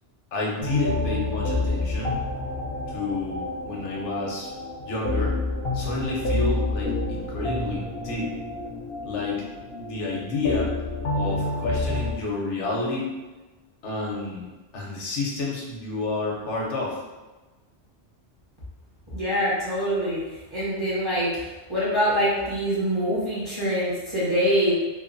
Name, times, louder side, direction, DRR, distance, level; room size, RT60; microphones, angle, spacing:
voice 1, 0.3-2.2 2.9-4.5 4.8-5.3 5.7-8.3 9.0-9.4 9.8-10.7 11.1-13.1 13.8-14.5 14.7-17.0, left 3 dB, 85° left, -3 dB, 1.0 m, -30 dB
sound 1, 0.6-12.2, left 2 dB, 65° left, 0.7 m, -29 dB
voice 2, 19.1-24.7, equal, 30° right, -10 dB, 0.8 m, -25 dB
3.0 x 2.2 x 2.5 m, 1.2 s
omnidirectional pair, 1.2 m